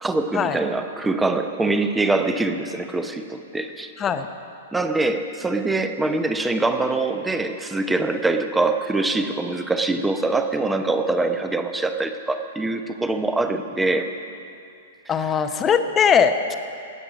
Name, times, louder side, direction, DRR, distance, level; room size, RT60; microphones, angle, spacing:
voice 1, 0.0-3.9 4.7-14.1, right 2 dB, 10° right, 7 dB, 0.8 m, -24 dB
voice 2, 15.1-16.6, left 7 dB, 20° left, 9 dB, 0.8 m, -20 dB
18.0 x 7.6 x 6.2 m, 2.5 s
figure-of-eight pair, 110°, 0 cm